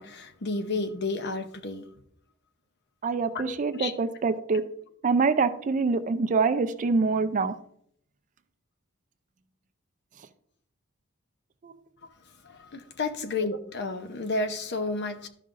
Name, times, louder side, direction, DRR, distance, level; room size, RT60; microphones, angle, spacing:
voice 1, 0.0-1.8 3.3-3.9 12.4-15.3, left 3 dB, 50° left, 0.7 m, -31 dB
voice 2, 3.0-4.6 5.0-7.5 11.6-11.7, right 4 dB, 35° right, 0.4 m, -25 dB
12.5 x 5.5 x 2.5 m
head